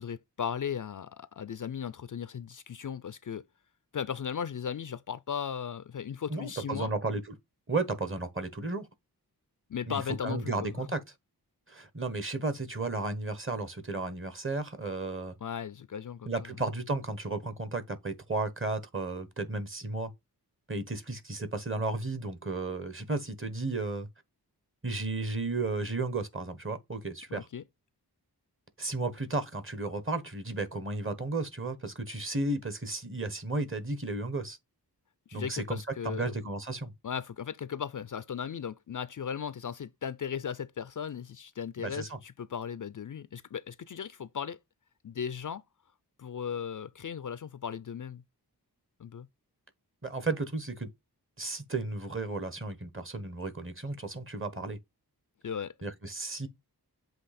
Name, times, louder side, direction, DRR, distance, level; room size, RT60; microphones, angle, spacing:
voice 1, 0.0-3.4 3.9-6.9 9.7-10.9 15.4-16.5 27.3-27.6 35.3-36.3 37.0-44.6 45.0-45.6 46.2-48.2 49.0-49.3 55.4-55.7, left 7 dB, 50° left, 0.5 m, -37 dB
voice 2, 6.3-7.3 7.7-8.9 9.9-11.0 11.7-15.3 16.2-20.1 20.7-24.1 24.8-27.5 28.8-34.6 35.3-36.9 41.8-42.2 50.0-50.9 51.4-54.8 55.8-56.5, right 3 dB, 30° right, 1.2 m, -34 dB
7.6 x 2.9 x 4.2 m
wide cardioid pair, 75°, 39 cm